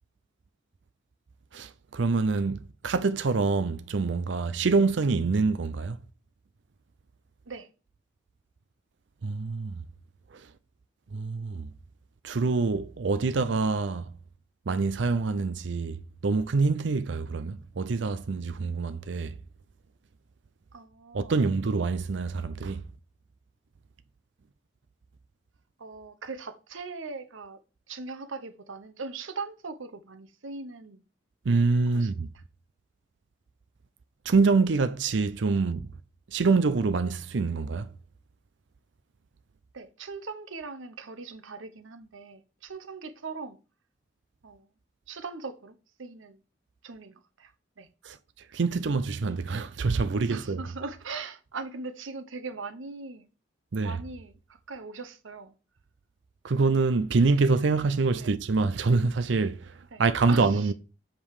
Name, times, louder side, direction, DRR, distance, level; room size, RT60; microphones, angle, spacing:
voice 1, 1.5-6.0 9.2-9.8 10.3-10.5 11.1-11.7 12.2-14.1 14.7-16.0 16.2-19.4 21.1-22.8 31.5-32.3 34.3-35.9 36.3-37.9 48.0-48.2 48.5-50.6 53.7-54.0 56.4-60.7, right 4 dB, 70° right, 0.5 m, -26 dB
voice 2, 20.7-21.4 25.8-27.6 27.9-31.0 31.9-32.2 39.7-43.6 44.4-44.7 45.1-46.4 46.8-47.5 47.8-47.9 50.3-53.3 53.8-55.5 58.1-58.3 59.9-60.0 60.3-60.7, right 4 dB, 85° right, 0.9 m, -40 dB
7.4 x 5.2 x 4.8 m
head